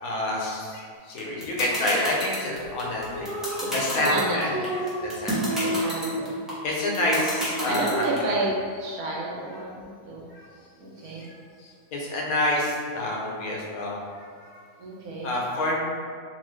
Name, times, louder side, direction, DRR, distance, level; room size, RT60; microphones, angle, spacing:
voice 1, 0.0-3.3 3.6-4.5 5.0-5.6 6.6-8.0 10.3-10.4 11.2-11.3 11.6-14.6 15.2-15.8, left 1 dB, 75° left, -3 dB, 1.1 m, -28 dB
sound 1, 1.2-8.2, equal, ahead, 0.3 m, -30 dB
sound 2, 2.4-7.8, right 1 dB, 30° right, 0.7 m, -32 dB
voice 2, 4.0-4.7 5.6-6.4 7.7-8.5 8.8-10.3 10.8-11.2 14.8-15.3, right 2 dB, 80° right, -4 dB, 1.1 m, -30 dB
2.9 x 2.3 x 3.1 m, 2.1 s
omnidirectional pair, 1.6 m